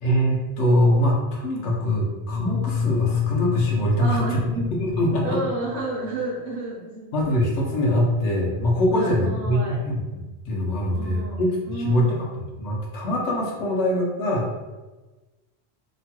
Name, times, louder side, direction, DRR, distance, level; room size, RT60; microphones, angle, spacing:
voice 1, 0.0-4.4 4.8-5.4 7.1-11.5 11.7-12.3 12.6-14.5, equal, 90° left, -2 dB, 1.0 m, -23 dB
sound 1, 2.1-6.2, left 7 dB, 5° left, 0.5 m, -27 dB
voice 2, 4.0-4.6 5.2-7.2 8.9-9.8 10.9-12.3, right 2 dB, 55° right, -4 dB, 0.7 m, -31 dB
2.9 x 2.2 x 2.9 m, 1.2 s
omnidirectional pair, 1.1 m